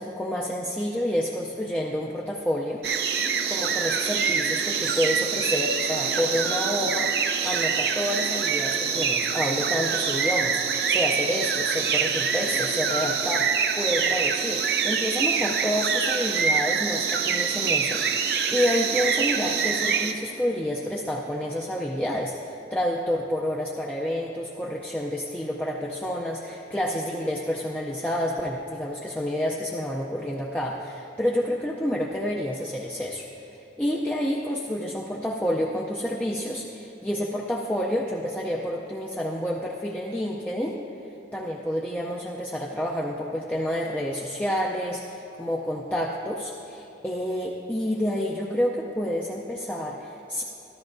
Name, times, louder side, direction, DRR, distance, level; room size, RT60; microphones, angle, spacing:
voice 1, 0.0-2.8 3.5-7.1 7.4-33.3 33.8-40.8 41.3-50.4, equal, 10° left, -3 dB, 0.4 m, -29 dB
sound 1, 2.8-20.1, right 6 dB, 60° right, 0.5 m, -25 dB
13.5 x 13.0 x 2.6 m, 2.9 s
head